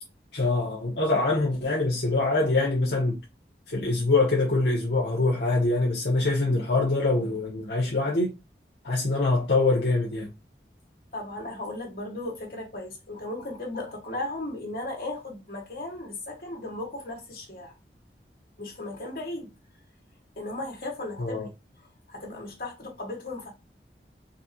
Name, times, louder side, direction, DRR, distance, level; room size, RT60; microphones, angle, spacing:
voice 1, 0.3-3.2 3.7-8.3 8.8-10.3 21.2-21.5, left 2 dB, 75° left, 0.9 m, -24 dB
voice 2, 11.1-17.7 18.6-19.5 20.4-21.5 22.1-23.5, left 2 dB, 55° left, 1.6 m, -36 dB
4.0 x 2.8 x 2.8 m
head